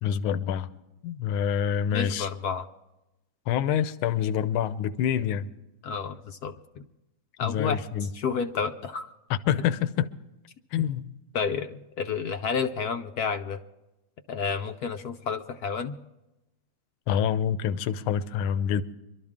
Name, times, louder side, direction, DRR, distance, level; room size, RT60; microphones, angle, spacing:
voice 1, 0.0-0.7 1.0-2.3 3.5-5.5 7.4-8.1 9.3-10.1 10.7-11.1 17.1-18.8, left 9 dB, 80° left, 13 dB, 1.6 m, -26 dB
voice 2, 1.9-2.6 5.8-6.6 7.4-7.8 8.1-9.1 10.7-10.8 11.3-13.6 14.3-15.9, left 6 dB, 65° left, 6 dB, 0.9 m, -30 dB
25.0 x 12.5 x 3.6 m, 0.95 s
omnidirectional pair, 2.3 m